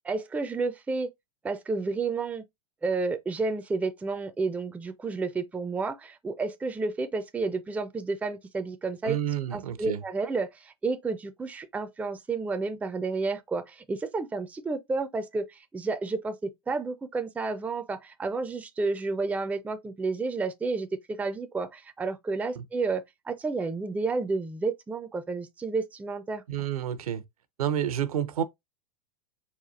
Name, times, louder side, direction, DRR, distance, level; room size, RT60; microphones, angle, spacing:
voice 1, 0.0-1.1 1.4-2.4 2.8-9.2 9.5-26.4, right 3 dB, 5° right, 0.4 m, -31 dB
voice 2, 9.0-10.0 22.6-22.7 26.5-27.2 27.6-28.4, right 10 dB, 70° right, 0.7 m, -29 dB
4.2 x 2.3 x 3.9 m
hypercardioid pair, 95°, 19 cm